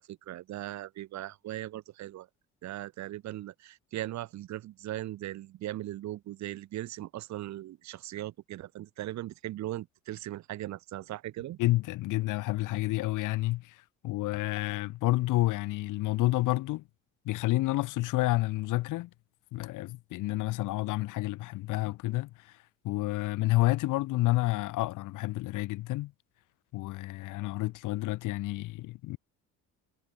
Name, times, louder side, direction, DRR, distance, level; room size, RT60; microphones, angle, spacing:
voice 1, 0.0-2.3 2.6-11.6, right 14 dB, 65° right, 3.6 m, -39 dB
voice 2, 11.6-13.8 14.0-16.8 17.2-19.1 19.5-22.5 22.8-26.1 26.7-29.2, left 18 dB, 85° left, 3.1 m, -29 dB
cardioid pair, 155°, 30 cm